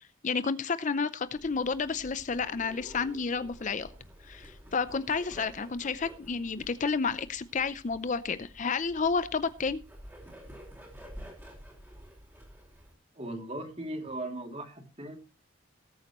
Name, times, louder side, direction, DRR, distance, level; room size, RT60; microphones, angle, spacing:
voice 1, 0.0-3.9 4.2-9.8, left 5 dB, 35° left, 14 dB, 0.5 m, -31 dB
Bird, 1.3-12.9, equal, 10° right, 4.4 m, -50 dB
voice 2, 13.1-15.2, right 1 dB, 30° right, 3 dB, 2.6 m, -38 dB
19.0 x 8.7 x 3.0 m, 0.31 s
head